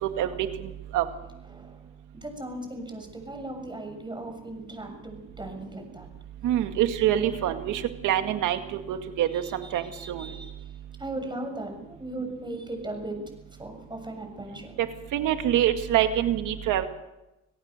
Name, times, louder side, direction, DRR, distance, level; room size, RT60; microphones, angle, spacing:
voice 1, 0.6-1.0 6.4-10.3 15.1-16.9, right 11 dB, 90° right, 7 dB, 2.0 m, -25 dB
voice 2, 1.5-1.8 2.2-6.1 9.3-10.6 11.0-13.2 13.6-14.7, right 1 dB, 15° right, 4 dB, 6.9 m, -38 dB
27.0 x 17.5 x 6.6 m, 0.95 s
cardioid pair, 90°, 30 cm